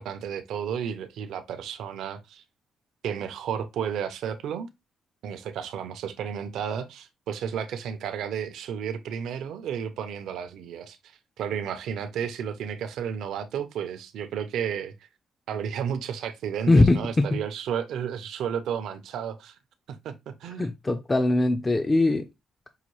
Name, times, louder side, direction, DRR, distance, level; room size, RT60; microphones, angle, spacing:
voice 1, 0.0-2.4 3.0-4.7 5.2-14.9 15.5-19.6 19.9-20.7, right 8 dB, 80° right, 0.6 m, -32 dB
voice 2, 16.7-17.4 20.6-22.3, left 2 dB, 20° left, 0.5 m, -21 dB
5.5 x 2.2 x 3.1 m
cardioid pair, 90°, 0 cm